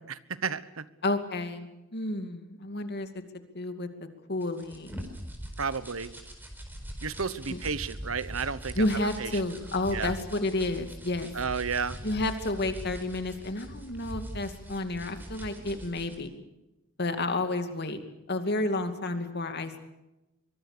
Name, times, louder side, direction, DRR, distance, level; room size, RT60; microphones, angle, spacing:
voice 1, 0.0-0.9 5.6-6.1 7.0-8.9 9.2-9.3 9.9-10.1 11.3-12.0, right 5 dB, 90° right, 15 dB, 1.1 m, -32 dB
voice 2, 1.0-3.1 3.3-5.0 7.5-7.6 8.7-11.3 12.0-16.3 17.0-18.0 18.3-19.8, left 2 dB, 55° left, 8 dB, 2.5 m, -31 dB
sound 1, 4.4-16.1, equal, 10° right, 4.6 m, -42 dB
23.5 x 23.5 x 6.8 m, 0.97 s
head